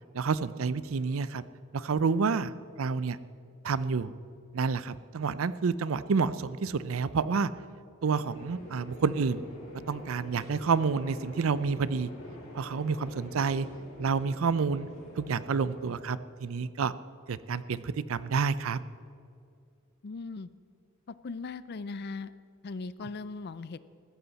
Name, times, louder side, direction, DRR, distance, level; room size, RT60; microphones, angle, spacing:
voice 1, 0.1-1.4 1.7-3.2 3.6-4.1 4.5-7.5 8.0-9.4 9.9-12.1 12.5-13.7 14.0-14.9 15.2-16.9 17.3-18.8, right 5 dB, 70° right, 16 dB, 0.5 m, -29 dB
sound 1, 8.2-16.0, left 1 dB, 80° left, 3.9 m, -46 dB
voice 2, 20.0-20.5 21.1-22.3 22.6-23.8, left 4 dB, 50° left, 16 dB, 0.5 m, -38 dB
15.0 x 13.5 x 4.1 m, 2.5 s
head